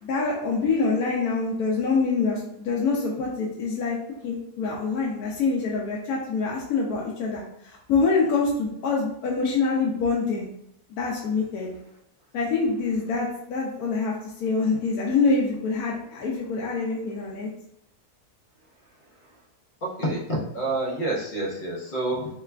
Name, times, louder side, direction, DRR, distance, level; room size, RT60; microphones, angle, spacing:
voice 1, 0.0-4.0 4.2-10.5 10.9-11.7 12.3-17.5, left 4 dB, 75° left, -3 dB, 1.0 m, -25 dB
voice 2, 19.8-22.3, right 2 dB, 40° left, -3 dB, 0.8 m, -28 dB
3.2 x 2.3 x 3.3 m, 0.76 s
omnidirectional pair, 1.6 m